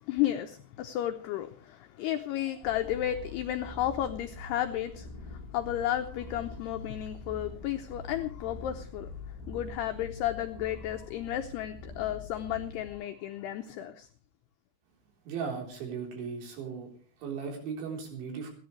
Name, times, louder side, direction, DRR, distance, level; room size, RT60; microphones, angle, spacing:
voice 1, 0.0-9.1 9.5-14.1, left 12 dB, 85° left, 6 dB, 2.3 m, -33 dB
sound 1, 2.6-12.9, left 2 dB, 5° right, 5.4 m, -44 dB
voice 2, 15.3-16.9 17.2-18.5, right 6 dB, 65° right, 2 dB, 6.0 m, -37 dB
30.0 x 10.5 x 3.2 m, 0.40 s
omnidirectional pair, 5.8 m